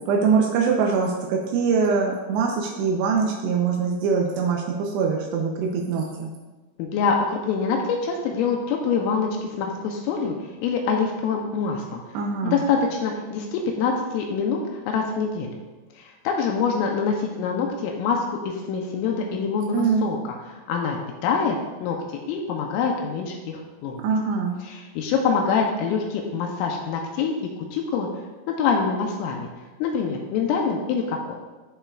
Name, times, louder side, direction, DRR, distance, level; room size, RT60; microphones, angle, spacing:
voice 1, 0.1-6.3 12.1-12.6 19.7-20.1 24.0-24.6, right 5 dB, 90° right, 0 dB, 2.4 m, -23 dB
voice 2, 6.8-10.3 10.6-12.0 12.4-15.6 16.0-22.0 22.3-24.0 24.6-28.1 28.5-29.5 29.8-31.4, left 5 dB, 80° left, 1 dB, 3.3 m, -25 dB
16.0 x 5.6 x 2.4 m, 1.2 s
omnidirectional pair, 6.0 m